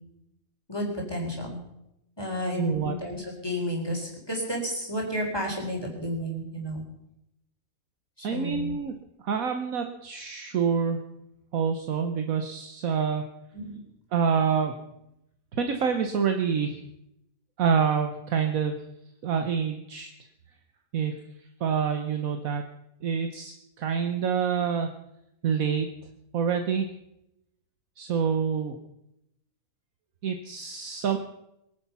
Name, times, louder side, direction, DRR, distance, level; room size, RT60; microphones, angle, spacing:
voice 1, 0.7-1.6 2.2-6.8 8.2-8.7 13.5-13.8, equal, 15° left, -1 dB, 4.1 m, -32 dB
voice 2, 2.6-3.0 8.2-8.9 9.2-11.0 11.5-13.3 14.1-14.8 15.5-16.8 17.6-18.8 19.2-20.1 20.9-21.2 21.6-22.6 23.0-24.9 25.4-25.9 26.3-26.9 28.0-28.8 30.2-31.2, right 6 dB, 70° right, 6 dB, 1.5 m, -27 dB
22.5 x 10.5 x 5.7 m, 0.83 s
omnidirectional pair, 1.5 m